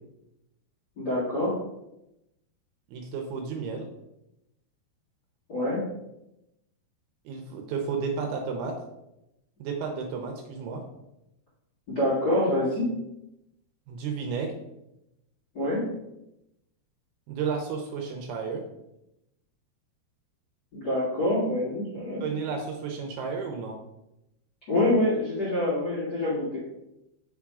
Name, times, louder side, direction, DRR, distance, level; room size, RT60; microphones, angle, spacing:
voice 1, 1.0-1.6 5.5-5.8 11.9-12.9 15.5-15.9 20.7-22.2 24.7-26.6, left 1 dB, 40° left, -10 dB, 1.5 m, -26 dB
voice 2, 2.9-3.9 7.3-8.8 9.6-10.8 13.9-14.6 17.3-18.6 22.2-23.8, right 5 dB, 80° right, 3 dB, 2.4 m, -32 dB
6.1 x 3.6 x 4.7 m, 0.88 s
omnidirectional pair, 4.9 m